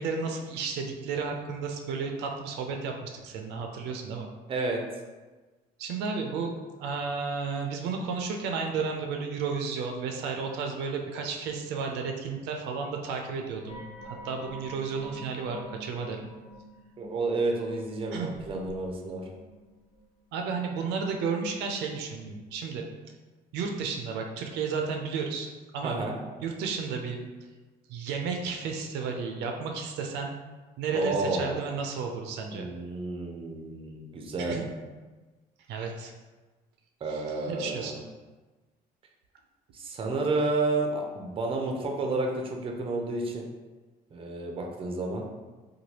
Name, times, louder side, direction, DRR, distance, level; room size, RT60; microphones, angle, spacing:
voice 1, 0.0-4.3 5.8-16.3 18.1-18.3 20.3-22.9 23.5-26.0 26.4-27.2 27.9-30.3 30.8-32.7 34.4-34.6 35.7-36.1 37.1-38.0, right 5 dB, 85° right, 2 dB, 0.4 m, -33 dB
voice 2, 4.5-4.8 17.0-19.2 25.8-26.1 30.9-31.5 32.5-34.6 37.0-37.9 39.7-43.5 44.1-45.2, right 2 dB, 30° right, 1 dB, 0.5 m, -30 dB
sound 1, 13.7-20.0 20.3-20.4, right 1 dB, 70° left, 1.0 m, -47 dB
3.1 x 2.2 x 2.8 m, 1.3 s
cardioid pair, 110°, 17 cm